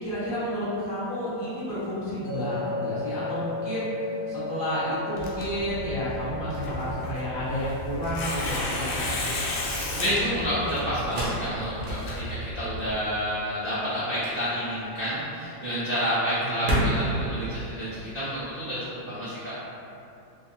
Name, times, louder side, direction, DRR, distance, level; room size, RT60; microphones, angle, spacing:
voice 1, 0.0-9.1 16.4-16.7, equal, 30° left, -13 dB, 1.1 m, -31 dB
sound 1, 2.2-15.4, left 3 dB, 55° left, 0.8 m, -38 dB
Tearing, 5.2-12.9, left 1 dB, 75° left, 1.4 m, -33 dB
sound 2, 7.3-18.5, equal, 60° right, 1.0 m, -34 dB
voice 2, 9.8-17.9 18.1-19.5, equal, 85° right, -14 dB, 0.4 m, -29 dB
4.0 x 2.4 x 2.7 m, 2.7 s
omnidirectional pair, 2.3 m